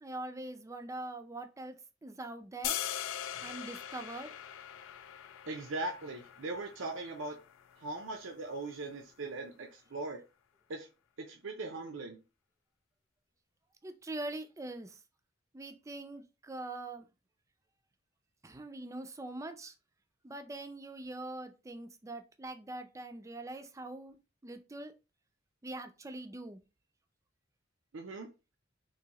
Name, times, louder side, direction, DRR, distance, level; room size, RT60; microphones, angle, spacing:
voice 1, 0.0-1.8 2.0-2.8 3.4-4.3 13.8-15.0 15.5-17.1 18.4-19.7 20.2-24.2 24.4-24.9 25.6-26.6, right 2 dB, 15° right, 0.4 m, -43 dB
sound 1, 2.6-8.7, left 10 dB, 90° left, 0.4 m, -42 dB
voice 2, 5.5-7.4 7.8-10.2 10.7-10.9 11.2-12.2 27.9-28.3, right 2 dB, 90° right, 0.6 m, -40 dB
3.9 x 2.7 x 2.9 m
head